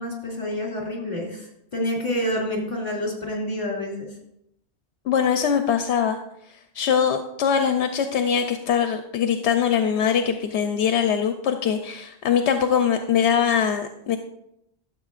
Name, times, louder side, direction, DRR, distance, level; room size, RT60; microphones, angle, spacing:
voice 1, 0.0-4.1, left 1 dB, 40° left, -2 dB, 2.7 m, -28 dB
voice 2, 5.1-6.2 6.7-14.2, left 7 dB, 80° left, 7 dB, 0.9 m, -22 dB
13.0 x 7.2 x 2.4 m, 0.77 s
omnidirectional pair, 1.1 m